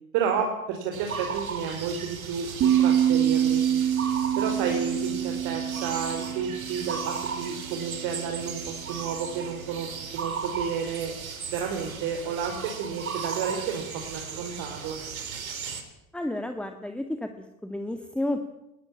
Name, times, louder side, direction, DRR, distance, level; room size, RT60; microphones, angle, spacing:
voice 1, 0.1-3.6 4.4-11.1 11.5-15.0, right 6 dB, 50° right, 3 dB, 4.3 m, -31 dB
sound 1, 0.9-15.8, right 6 dB, 75° right, 4.0 m, -36 dB
sound 2, 2.6-7.7, right 10 dB, 30° right, 2.2 m, -26 dB
voice 2, 16.1-18.4, left 1 dB, ahead, 7 dB, 1.9 m, -31 dB
21.0 x 20.0 x 8.7 m, 0.89 s
figure-of-eight pair, 80°, 43 cm